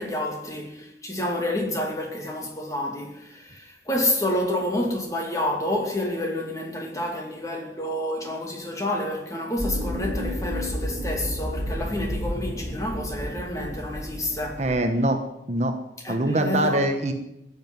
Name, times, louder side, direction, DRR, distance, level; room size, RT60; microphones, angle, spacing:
voice 1, 0.0-14.6 16.0-16.9, left 1 dB, 15° left, 2.5 m, -29 dB
sound 1, 9.6-14.8, equal, 15° right, 3.8 m, -31 dB
voice 2, 14.6-15.2 15.5-15.7 16.1-17.1, right 1 dB, 35° right, 1.1 m, -23 dB
15.0 x 8.0 x 9.3 m
head